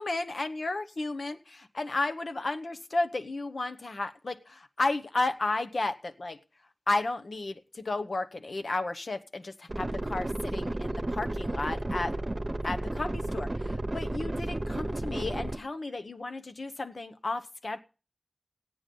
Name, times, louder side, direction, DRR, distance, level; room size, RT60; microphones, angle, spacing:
voice 1, 0.0-6.4 6.9-12.1 12.6-17.8, left 2 dB, 85° left, 0.9 m, -33 dB
sound 1, 9.7-15.6, right 1 dB, 45° right, 0.9 m, -33 dB
14.5 x 9.0 x 5.3 m
wide cardioid pair, 65°, 0 cm